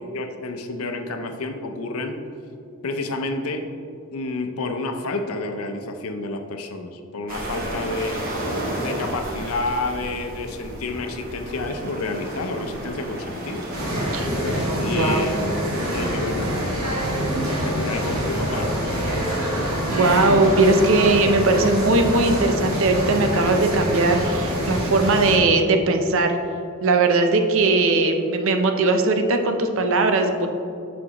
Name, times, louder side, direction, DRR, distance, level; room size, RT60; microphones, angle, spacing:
voice 1, 0.1-2.2 2.8-3.7 4.1-8.2 8.7-13.7 14.1-15.4 15.8-16.9 17.5-19.5, left 2 dB, 75° left, 6 dB, 0.6 m, -30 dB
sound 1, 7.3-14.0, right 1 dB, 40° right, 0.9 m, -32 dB
sound 2, 13.7-25.4, equal, 80° right, 1.4 m, -25 dB
voice 2, 15.0-15.3 19.9-26.4 26.8-30.5, right 2 dB, 65° right, 5 dB, 0.6 m, -19 dB
6.0 x 6.0 x 2.9 m, 2.5 s
head